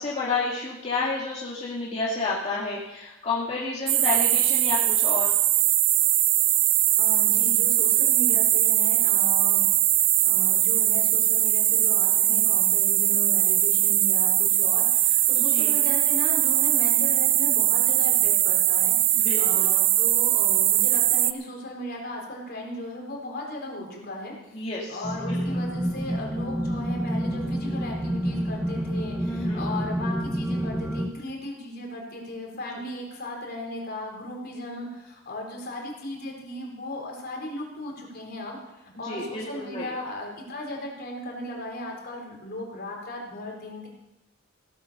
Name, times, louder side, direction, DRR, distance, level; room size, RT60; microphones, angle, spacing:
voice 1, 0.0-5.3 15.4-15.7 19.2-19.7 24.5-25.4 29.3-29.6 39.0-39.9, left 3 dB, 35° left, -6 dB, 2.2 m, -30 dB
sound 1, 3.9-21.3, right 14 dB, 45° right, 0.5 m, -21 dB
voice 2, 7.0-9.7 10.2-24.6 24.9-43.9, left 1 dB, 50° left, 0 dB, 4.0 m, -36 dB
sound 2, 25.0-31.1, equal, 10° right, 1.0 m, -28 dB
16.5 x 8.9 x 6.7 m, 0.94 s
head